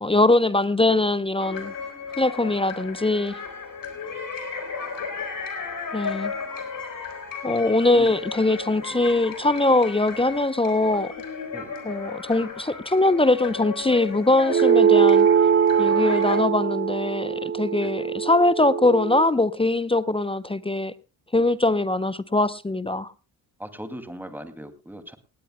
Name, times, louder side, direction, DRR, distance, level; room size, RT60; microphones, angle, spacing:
voice 1, 0.0-1.7 2.2-3.4 5.9-6.3 7.4-11.1 11.8-15.3 15.8-20.9 21.3-23.1, left 2 dB, 10° left, 0.6 m, -22 dB
sound 1, 1.4-16.4, left 5 dB, 40° left, 4.0 m, -35 dB
sound 2, 14.5-19.3, right 7 dB, 25° right, 0.6 m, -21 dB
voice 2, 23.6-25.2, right 1 dB, 5° right, 2.4 m, -39 dB
18.5 x 18.5 x 2.2 m
figure-of-eight pair, 40°, 49 cm